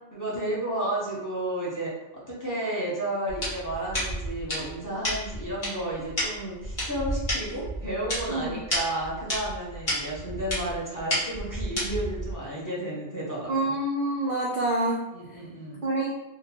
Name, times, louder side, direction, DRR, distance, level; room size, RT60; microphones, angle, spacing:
voice 1, 0.1-13.7 15.1-15.8, right 1 dB, 20° left, -7 dB, 0.8 m, -32 dB
sound 1, 3.3-12.3, equal, 40° left, 1.4 m, -31 dB
voice 2, 13.5-15.0 15.8-16.1, right 2 dB, 55° right, -3 dB, 0.5 m, -26 dB
3.6 x 2.2 x 2.9 m, 0.99 s
omnidirectional pair, 1.2 m